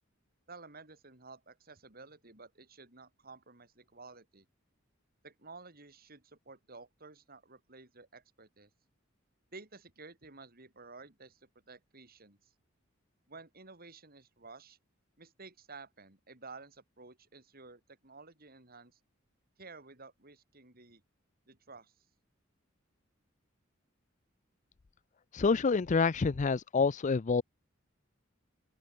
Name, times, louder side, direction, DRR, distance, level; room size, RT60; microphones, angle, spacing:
voice 1, 0.5-4.4 5.2-8.7 9.5-12.5 13.3-14.8 15.2-19.0 19.6-21.0 21.5-21.9, right 3 dB, 50° right, 5.0 m, -53 dB
voice 2, 25.3-27.4, left 4 dB, 40° left, 0.5 m, -27 dB
open air
head